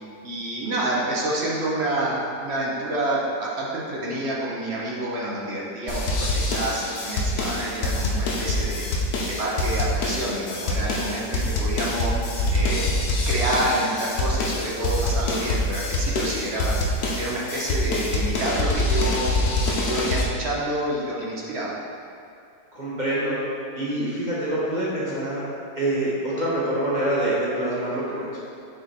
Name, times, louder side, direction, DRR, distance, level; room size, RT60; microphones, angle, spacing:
voice 1, 0.2-8.8 9.3-12.1 12.5-12.9 13.3-16.7 17.2-21.8, right 1 dB, 55° right, -4 dB, 0.7 m, -28 dB
sound 1, 5.9-20.2, left 1 dB, 60° left, 1.1 m, -25 dB
voice 2, 22.7-23.4 23.7-25.4 25.8-28.4, right 1 dB, 30° right, -9 dB, 1.0 m, -25 dB
6.7 x 3.8 x 4.2 m, 2.5 s
omnidirectional pair, 2.1 m